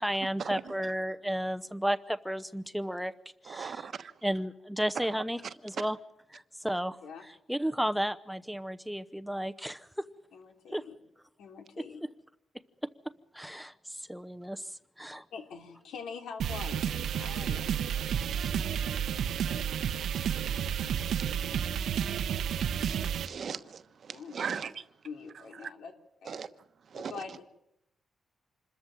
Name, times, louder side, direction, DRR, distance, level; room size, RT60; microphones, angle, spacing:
voice 1, 0.0-3.1 3.4-3.9 4.2-6.0 6.3-7.0 7.5-10.0 10.7-10.8 13.3-14.6 15.0-15.2, equal, ahead, 11 dB, 0.8 m, -33 dB
voice 2, 3.5-4.1 18.1-18.5 20.8-21.4 22.7-24.8 25.6-25.7 26.3-26.5 26.9-27.1, right 6 dB, 55° right, 12 dB, 1.1 m, -39 dB
voice 3, 10.3-11.0 11.4-12.0 15.3-16.9 17.2-17.7 24.1-24.6 25.0-25.9 26.2-26.4 26.9-27.5, left 5 dB, 90° left, 5 dB, 3.5 m, -44 dB
sound 1, 16.4-23.3, right 9 dB, 80° right, 1.0 m, -31 dB
27.0 x 14.0 x 8.9 m, 0.83 s
cardioid pair, 120°, 0 cm